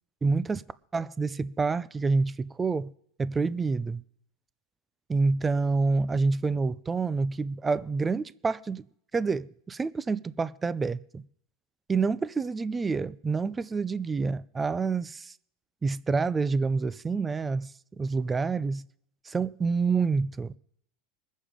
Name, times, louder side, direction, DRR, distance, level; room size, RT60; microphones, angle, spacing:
voice 1, 0.2-0.6 0.9-2.9 3.2-4.0 5.1-8.9 9.1-11.2 11.9-15.3 15.8-18.8 19.3-20.6, right 4 dB, 15° right, 0.5 m, -27 dB
20.5 x 7.4 x 5.1 m
supercardioid pair, 140°, 0 cm